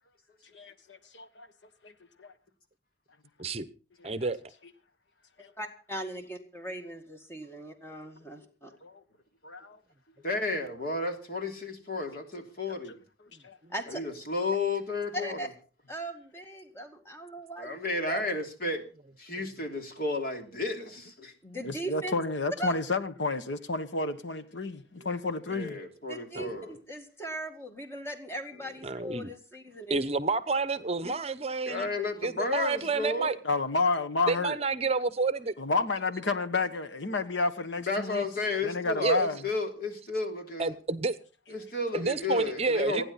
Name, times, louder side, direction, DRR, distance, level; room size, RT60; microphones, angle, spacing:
voice 1, 0.5-1.5 1.8-1.9 4.0-4.1 5.4-5.5 8.8-9.0 9.4-9.8 12.7-12.8 13.4-13.6 21.5-25.8 33.4-34.6 35.6-38.2 38.6-39.4, left 3 dB, 90° left, 1.3 m, -30 dB
voice 2, 4.0-4.4 26.3-26.5 28.8-29.3 29.9-31.9 32.2-33.4 34.3-35.5 39.0-39.3 40.6-41.2 41.9-43.0, right 3 dB, 35° right, 0.8 m, -29 dB
voice 3, 5.6-8.7 13.7-14.0 15.1-15.5 15.9-18.2 21.4-22.2 22.6-22.7 26.1-30.0 31.0-31.1, right 1 dB, 15° left, 1.9 m, -39 dB
voice 4, 10.2-13.0 13.9-15.5 17.6-18.8 19.2-21.3 25.5-26.7 31.7-33.3 37.8-40.7 41.5-43.0, left 3 dB, 50° left, 3.1 m, -32 dB
28.5 x 10.0 x 4.2 m
head